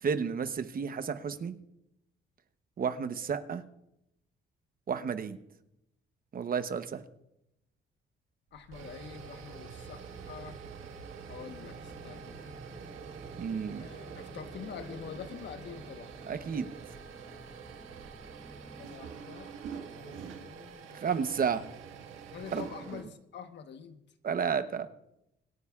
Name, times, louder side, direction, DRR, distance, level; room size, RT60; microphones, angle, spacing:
voice 1, 0.0-1.6 2.8-3.6 4.9-5.4 6.3-7.0 13.4-13.9 16.3-16.7 20.9-21.6 22.5-22.7 24.2-24.9, right 6 dB, 45° right, 11 dB, 0.9 m, -31 dB
voice 2, 8.5-10.6 11.3-12.5 13.7-16.1 18.8-21.1 22.3-24.0, left 7 dB, 65° left, 8 dB, 1.3 m, -46 dB
sound 1, 8.5-23.0, right 6 dB, 85° right, 1.7 m, -46 dB
sound 2, 11.4-18.9, equal, ahead, 2.1 m, -52 dB
26.0 x 9.8 x 2.4 m, 0.85 s
cardioid pair, 90°, 20 cm